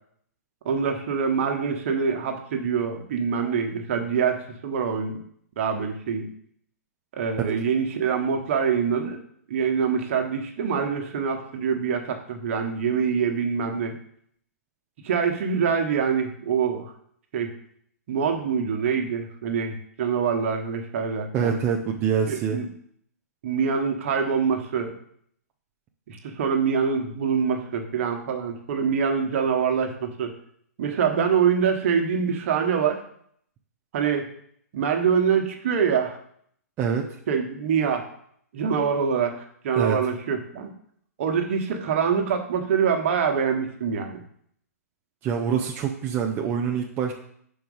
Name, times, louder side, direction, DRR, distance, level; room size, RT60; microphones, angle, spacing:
voice 1, 0.6-5.2 5.6-6.3 7.1-9.2 9.5-14.0 15.0-16.9 17.3-17.5 18.1-21.6 22.3-22.7 23.4-24.9 26.1-30.3 30.8-33.0 33.9-34.3 34.7-36.2 37.3-38.1 38.5-40.7 41.2-44.2, right 6 dB, 50° right, 4 dB, 1.2 m, -25 dB
voice 2, 21.3-22.6 36.8-37.1 39.7-40.0 45.2-47.1, right 7 dB, 20° right, 0 dB, 0.6 m, -25 dB
6.0 x 4.6 x 5.4 m, 0.65 s
hypercardioid pair, 150°, 9 cm